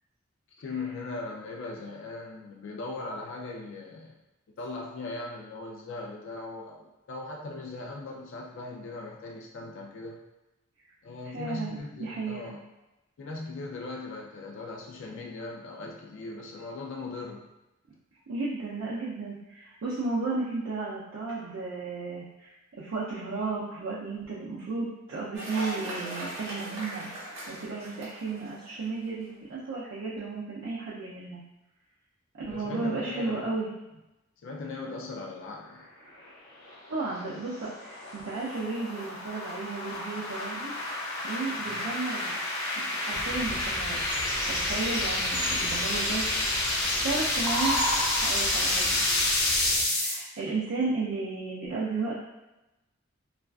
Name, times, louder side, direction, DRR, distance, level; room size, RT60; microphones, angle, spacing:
voice 1, 0.6-4.2 4.6-10.2 11.0-12.6 13.2-17.5 32.5-33.6 34.4-35.9 41.7-41.8 49.9-50.0, left 3 dB, 65° left, -1 dB, 0.3 m, -39 dB
voice 2, 11.3-12.5 18.3-27.1 27.5-31.4 32.5-33.7 36.0-36.2 36.9-40.7 41.2-42.4 42.9-44.0 44.5-46.7 47.0-49.0 49.8-52.1, right 3 dB, 75° right, -8 dB, 0.4 m, -34 dB
Cheering / Applause, 25.3-29.1, equal, 55° right, 0.9 m, -39 dB
sound 1, 36.2-50.1, left 2 dB, 90° left, 0.7 m, -30 dB
sound 2, 43.1-49.8, equal, 5° right, 0.4 m, -34 dB
2.4 x 2.3 x 2.2 m, 0.98 s
head